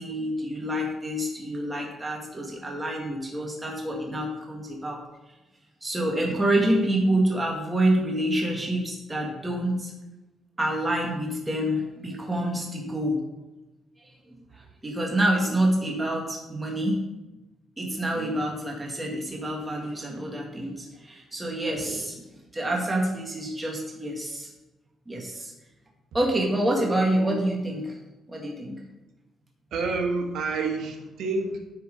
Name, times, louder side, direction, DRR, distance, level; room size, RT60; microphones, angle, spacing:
voice 1, 0.0-5.0 5.8-9.9 10.6-13.2 14.0-17.0 17.8-22.2 22.5-24.5 25.1-25.5 26.1-28.0 28.3-28.8, right 1 dB, 15° right, -1 dB, 1.8 m, -27 dB
voice 2, 29.7-31.6, right 3 dB, 75° right, 2 dB, 1.6 m, -29 dB
9.4 x 4.3 x 5.1 m, 1.1 s
cardioid pair, 90°, 0 cm